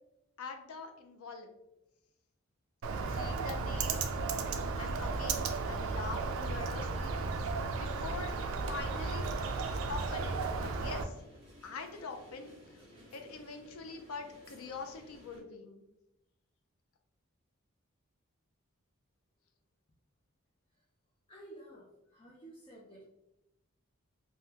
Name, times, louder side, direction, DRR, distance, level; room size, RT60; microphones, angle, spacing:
voice 1, 0.4-1.5 3.0-4.0 4.8-7.1 7.7-8.4 8.6-9.3 9.9-11.1 11.6-12.5 13.1-15.8, left 4 dB, 75° left, 5 dB, 0.5 m, -44 dB
Bird, 2.8-11.0, right 4 dB, 70° right, 0.3 m, -34 dB
sound 1, 4.4-15.4, equal, 25° right, 1.4 m, -56 dB
voice 2, 21.3-23.1, right 1 dB, 25° left, -4 dB, 0.4 m, -52 dB
3.5 x 2.2 x 2.8 m, 0.89 s
head